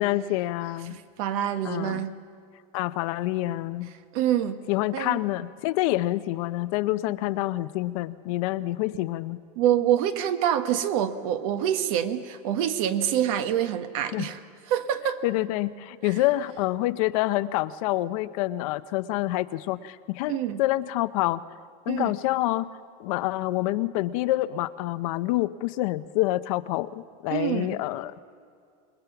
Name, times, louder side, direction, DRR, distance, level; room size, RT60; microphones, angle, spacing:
voice 1, 0.0-1.0 1.6-2.0 2.7-3.9 4.7-9.4 14.1-14.3 15.2-21.4 21.9-22.7 23.0-28.2, left 16 dB, 70° left, 13 dB, 0.7 m, -27 dB
voice 2, 0.9-2.1 4.1-4.6 4.9-5.2 9.5-14.4 14.7-15.2 16.0-16.1 20.3-20.6 21.9-22.1 27.3-27.8, right 10 dB, 70° right, 8 dB, 1.5 m, -26 dB
27.5 x 21.0 x 5.9 m, 2.3 s
supercardioid pair, 145°, 19 cm